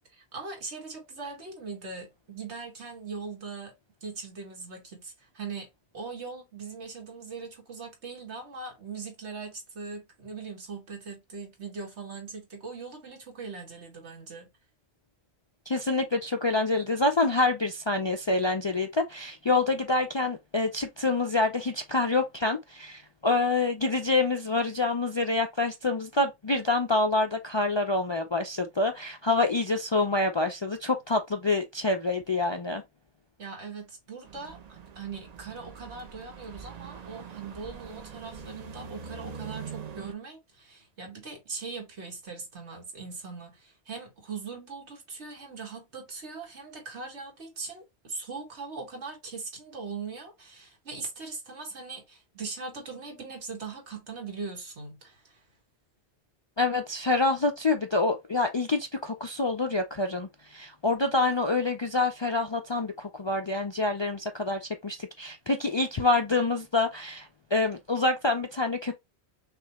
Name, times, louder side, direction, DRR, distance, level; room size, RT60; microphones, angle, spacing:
voice 1, 0.1-3.7 4.0-5.7 5.9-14.5 33.4-55.4, right 4 dB, 90° right, 1.8 m, -40 dB
voice 2, 15.7-32.8 56.6-69.0, left 3 dB, 45° left, 0.3 m, -27 dB
sound 1, 34.2-40.1, right 6 dB, 45° right, 0.6 m, -43 dB
5.9 x 2.5 x 3.0 m
omnidirectional pair, 1.1 m